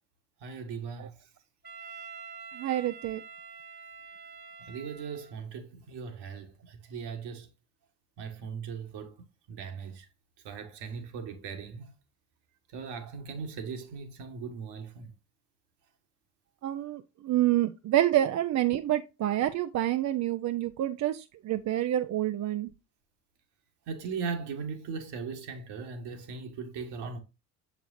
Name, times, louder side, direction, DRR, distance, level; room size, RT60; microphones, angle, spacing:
voice 1, 0.4-1.2 4.6-7.5 8.2-9.1 9.5-10.1 10.4-11.9 12.7-15.1 23.9-27.2, right 5 dB, 60° right, 1.6 m, -38 dB
Wind instrument woodwind instrument, 1.6-5.5, right 6 dB, 20° right, 1.2 m, -46 dB
voice 2, 2.5-3.2 16.6-22.7, right 13 dB, 40° right, 0.5 m, -28 dB
6.8 x 6.0 x 2.6 m
hypercardioid pair, 60°, 46 cm